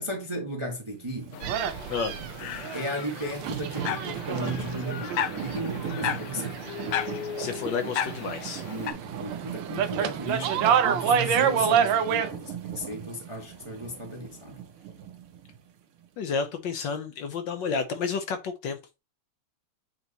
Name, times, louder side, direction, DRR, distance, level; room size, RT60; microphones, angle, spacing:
voice 1, 0.0-1.4 2.7-6.6 8.6-14.6, equal, 20° right, 0.9 m, -35 dB
sound 1, 1.1-15.6 16.0-16.1, right 8 dB, 90° right, 1.8 m, -39 dB
sound 2, 1.3-8.9, left 9 dB, 90° left, 1.6 m, -35 dB
sound 3, 1.4-7.2 7.5-8.7 9.0-12.3, right 8 dB, 70° right, 1.3 m, -27 dB
voice 2, 7.4-8.6 16.2-19.0, left 5 dB, 70° left, 1.3 m, -31 dB
8.1 x 3.0 x 4.0 m
omnidirectional pair, 2.3 m